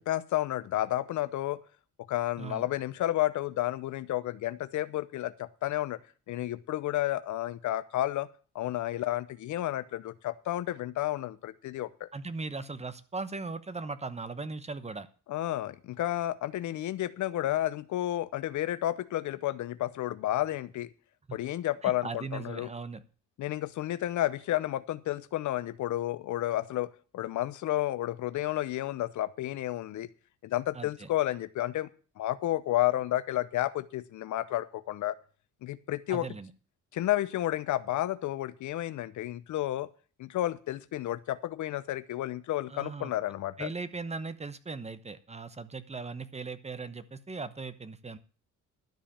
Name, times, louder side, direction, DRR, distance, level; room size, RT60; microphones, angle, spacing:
voice 1, 0.0-1.6 2.1-6.0 6.3-8.3 8.5-12.1 15.3-20.9 21.3-22.7 23.4-30.1 30.4-31.9 32.2-35.1 35.6-36.3 36.9-39.9 40.2-43.7, left 14 dB, 75° left, 15 dB, 0.7 m, -31 dB
voice 2, 12.1-15.1 21.3-21.4 21.8-23.0 30.7-31.1 36.1-36.5 42.7-43.1 43.6-48.2, right 4 dB, 20° right, 13 dB, 1.0 m, -38 dB
12.0 x 5.1 x 8.6 m, 0.38 s
cardioid pair, 90°, 30 cm